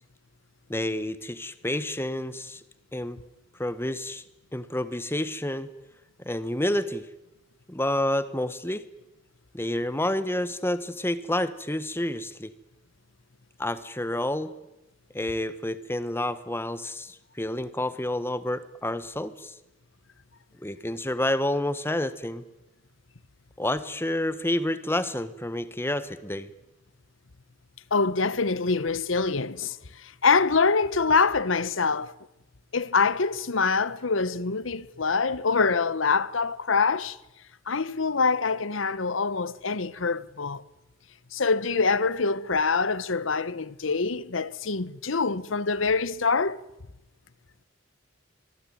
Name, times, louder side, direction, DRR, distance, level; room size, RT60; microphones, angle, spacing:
voice 1, 0.7-2.6 2.9-3.2 3.6-4.2 4.5-5.7 6.2-7.1 7.7-8.8 9.5-12.5 13.6-14.5 15.1-19.5 20.6-22.4 23.6-26.5, left 1 dB, 10° left, 1.4 m, -29 dB
voice 2, 27.9-29.8 30.0-32.1 32.7-37.2 37.7-40.6 41.3-46.6, left 4 dB, 75° left, 1.1 m, -25 dB
25.0 x 22.0 x 9.4 m
head